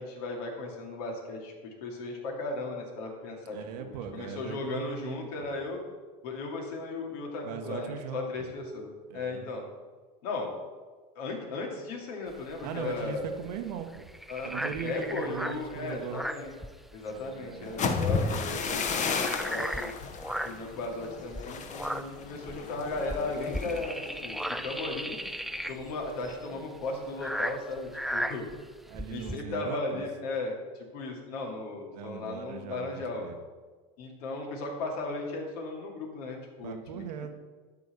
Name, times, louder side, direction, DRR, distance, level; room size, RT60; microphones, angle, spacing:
voice 1, 0.0-1.5 1.8-5.8 6.2-9.7 10.2-10.5 11.1-13.3 14.3-14.5 14.8-16.5 16.9-19.9 20.4-25.2 25.7-28.5 29.1-30.5 30.9-33.3 34.0-37.0, left 3 dB, 80° left, 0 dB, 2.5 m, -36 dB
voice 2, 3.5-5.3 7.4-8.3 9.1-9.5 12.6-14.1 14.4-16.2 17.1-17.8 28.9-30.0 31.9-32.9 33.2-33.4 36.6-37.4, right 8 dB, 85° right, 6 dB, 1.3 m, -39 dB
sound 1, 12.3-17.3 17.5-17.7 18.1-20.7 21.2-29.4, equal, ahead, 0.3 m, -36 dB
sound 2, 17.6-25.5 25.8-26.2 26.5-26.9, left 5 dB, 35° left, 1.1 m, -34 dB
12.0 x 4.1 x 6.7 m, 1.4 s
supercardioid pair, 115°, 20 cm